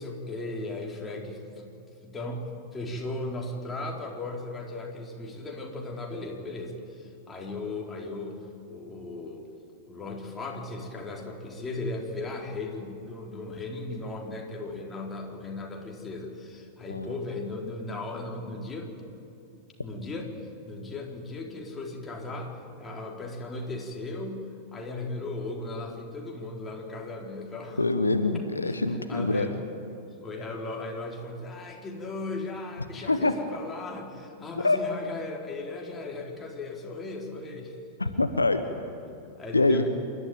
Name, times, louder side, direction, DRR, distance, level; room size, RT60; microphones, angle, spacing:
voice 1, 0.0-1.7 2.0-2.5 2.7-9.4 9.9-19.0 19.8-20.3 20.6-24.5 24.7-27.8 28.5-28.7 29.1-29.6 30.2-37.8 38.0-38.2 39.2-39.9, left 2 dB, 15° left, -1 dB, 3.9 m, -37 dB
voice 2, 27.8-29.5 33.1-33.3 34.6-34.8 38.0-38.6 39.5-39.8, left 3 dB, 80° left, 8 dB, 1.1 m, -24 dB
27.5 x 12.5 x 9.2 m, 2.5 s
figure-of-eight pair, 90°, 0 cm